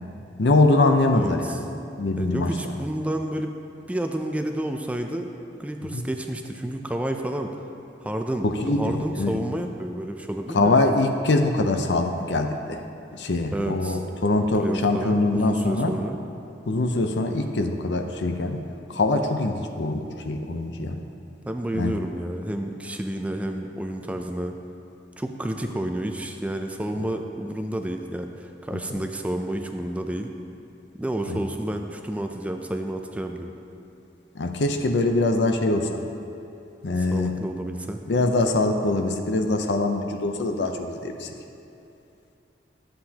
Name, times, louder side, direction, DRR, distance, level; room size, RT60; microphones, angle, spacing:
voice 1, 0.4-1.6 2.0-2.5 5.9-6.0 8.4-9.4 10.5-12.8 13.1-15.9 16.7-18.6 18.9-21.0 21.7-22.0 28.7-28.8 31.3-31.4 34.3-36.0 36.8-37.4 38.1-41.3, left 2 dB, 75° left, 5 dB, 0.6 m, -23 dB
voice 2, 1.1-1.6 2.2-3.5 3.9-5.3 5.6-7.6 8.0-10.8 13.5-14.0 14.6-16.2 21.4-24.6 25.2-30.3 31.0-33.6 37.1-38.0, right 1 dB, 10° right, 4 dB, 0.4 m, -30 dB
12.5 x 7.7 x 2.9 m, 2.8 s
head